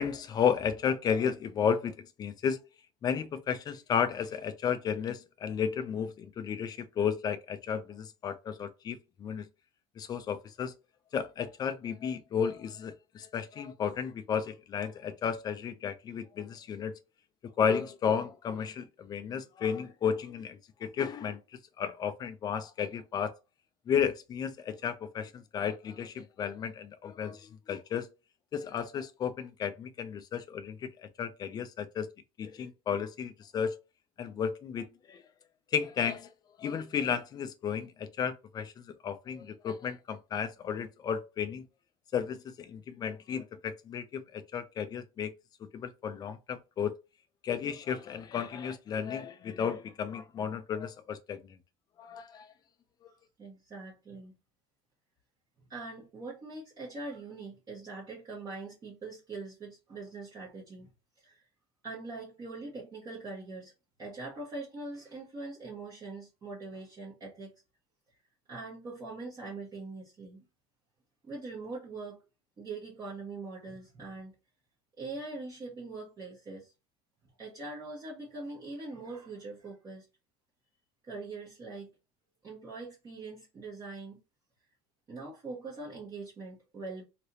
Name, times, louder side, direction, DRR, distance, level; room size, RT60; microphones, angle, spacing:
voice 1, 0.0-2.6 3.0-9.5 10.0-10.7 11.1-16.9 17.6-21.4 21.8-23.3 23.9-28.1 28.5-30.9 31.2-32.1 32.4-33.8 34.2-35.2 35.7-36.3 36.6-41.6 42.1-45.3 45.7-46.9 47.4-51.6 52.0-52.5, left 7 dB, 25° left, 0.5 m, -33 dB
voice 2, 53.1-54.3 55.7-60.9 61.2-61.5 61.8-63.7 64.0-67.5 68.5-70.5 71.2-72.2 72.6-74.3 75.0-76.7 77.4-80.0 81.0-81.9 82.4-84.2 85.1-87.0, right 3 dB, 25° right, 1.0 m, -42 dB
3.2 x 2.9 x 2.7 m
cardioid pair, 150°, 15 cm